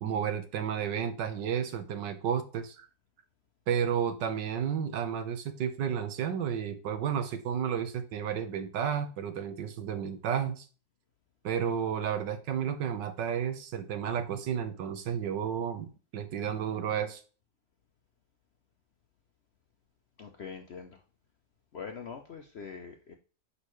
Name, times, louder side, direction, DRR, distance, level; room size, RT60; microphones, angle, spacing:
voice 1, 0.0-2.9 3.7-10.6 11.4-17.2, right 8 dB, 80° right, 8 dB, 1.6 m, -32 dB
voice 2, 20.2-21.0 21.7-23.1, left 6 dB, 60° left, 4 dB, 0.7 m, -43 dB
6.5 x 5.4 x 3.1 m, 0.36 s
omnidirectional pair, 1.9 m